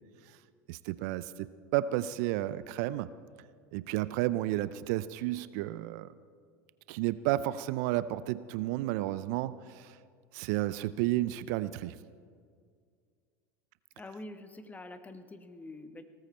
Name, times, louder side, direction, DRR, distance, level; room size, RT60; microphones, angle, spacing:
voice 1, 0.7-3.1 3.7-6.1 6.9-10.0 10.3-12.0, right 15 dB, 65° right, 16 dB, 0.5 m, -32 dB
voice 2, 14.0-16.0, left 2 dB, 15° left, 9 dB, 1.2 m, -46 dB
18.0 x 14.0 x 4.3 m, 2.1 s
hypercardioid pair, 85°, 10 cm